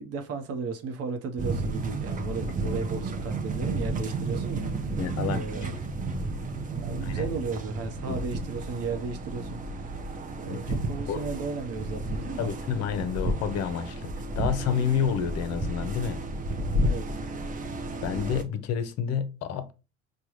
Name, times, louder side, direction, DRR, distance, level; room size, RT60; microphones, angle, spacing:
voice 1, 0.0-5.7 6.5-9.9 10.4-12.5 16.8-17.1, right 4 dB, 50° right, 0.8 m, -35 dB
sound 1, 1.4-18.4, right 2 dB, 25° right, 0.7 m, -32 dB
voice 2, 5.0-5.7 7.0-7.3 8.1-8.2 10.5-10.6 11.1-11.2 12.4-16.2 18.0-19.7, left 8 dB, 55° left, 0.6 m, -29 dB
4.7 x 2.3 x 3.0 m
hypercardioid pair, 70°, 31 cm